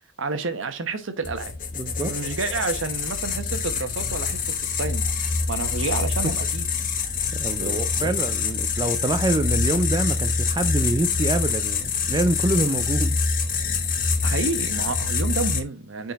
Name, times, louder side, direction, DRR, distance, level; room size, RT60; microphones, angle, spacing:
voice 1, 0.2-1.5 2.0-6.7 7.6-8.1 14.2-16.1, right 4 dB, 70° right, 1.0 m, -30 dB
sound 1, 1.2-15.6, left 5 dB, 45° left, 1.0 m, -25 dB
voice 2, 1.8-2.2 6.2-6.4 7.3-13.2, right 2 dB, 20° right, 0.4 m, -26 dB
6.5 x 4.0 x 4.0 m
head